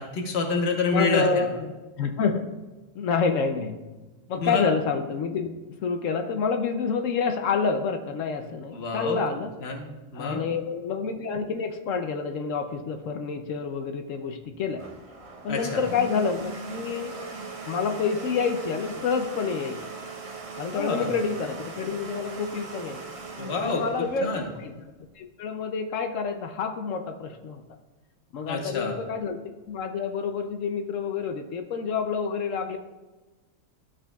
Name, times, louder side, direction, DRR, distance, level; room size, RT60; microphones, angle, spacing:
voice 1, 0.0-1.5 4.3-4.6 8.7-9.2 9.6-10.4 15.5-15.8 20.7-21.1 23.4-23.8 24.2-24.5 28.5-28.9, left 3 dB, 50° left, 2 dB, 1.3 m, -27 dB
voice 2, 0.9-1.7 2.0-2.5 2.9-3.8 4.3-5.5 5.8-9.5 10.1-14.8 15.4-17.1 17.7-19.8 20.6-23.0 23.6-24.7 25.2-27.6 28.3-32.8, left 5 dB, 75° left, 6 dB, 1.0 m, -28 dB
Domestic sounds home sounds, 14.4-25.1, right 3 dB, 35° right, 0.7 m, -40 dB
12.5 x 6.1 x 2.3 m, 1.2 s
omnidirectional pair, 1.4 m